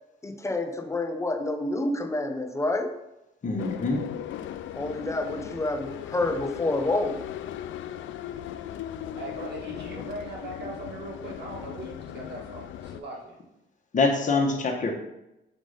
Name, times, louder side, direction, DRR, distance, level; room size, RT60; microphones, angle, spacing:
voice 1, 0.2-3.0 4.7-7.2, left 2 dB, 15° left, 6 dB, 0.7 m, -28 dB
voice 2, 3.4-4.0 13.9-14.9, left 3 dB, 40° left, 1 dB, 1.2 m, -24 dB
sound 1, 3.6-13.0, left 10 dB, 75° left, 0.4 m, -38 dB
voice 3, 9.2-13.4, right 2 dB, 60° right, -2 dB, 1.8 m, -39 dB
5.3 x 3.7 x 5.0 m, 0.92 s
cardioid pair, 90°, 20 cm